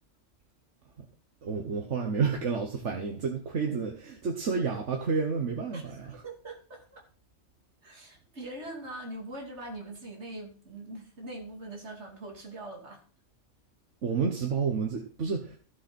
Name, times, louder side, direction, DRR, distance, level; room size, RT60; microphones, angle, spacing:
voice 1, 1.4-5.8 6.1-6.2 14.0-15.6, right 5 dB, 90° right, 3 dB, 1.6 m, -30 dB
voice 2, 6.2-7.0 7.8-13.0, right 1 dB, 75° right, 0 dB, 2.9 m, -42 dB
14.5 x 7.2 x 4.4 m, 0.41 s
omnidirectional pair, 1.2 m